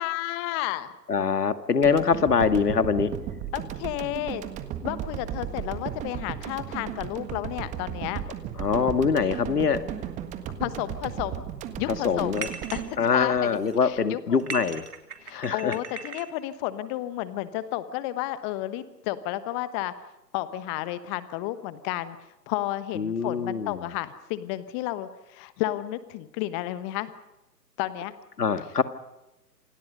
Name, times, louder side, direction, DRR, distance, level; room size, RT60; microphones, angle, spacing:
voice 1, 0.0-0.9 3.5-4.4 4.8-8.2 10.6-11.4 11.8-12.4 12.7-14.4 15.2-19.9 20.3-22.2 22.5-27.1 27.8-28.1, left 15 dB, 15° left, 14 dB, 1.1 m, -32 dB
voice 2, 1.1-3.1 8.6-9.8 12.0-12.5 13.0-14.8 15.3-15.8 23.0-23.9 28.4-28.8, left 6 dB, 70° left, 10 dB, 2.1 m, -24 dB
sound 1, 1.8-14.0, right 10 dB, 15° right, 1.6 m, -35 dB
sound 2, 12.3-12.9 13.4-13.8 14.4-16.3, right 5 dB, 65° right, 3.5 m, -38 dB
28.0 x 25.5 x 5.4 m, 0.96 s
figure-of-eight pair, 130°, 49 cm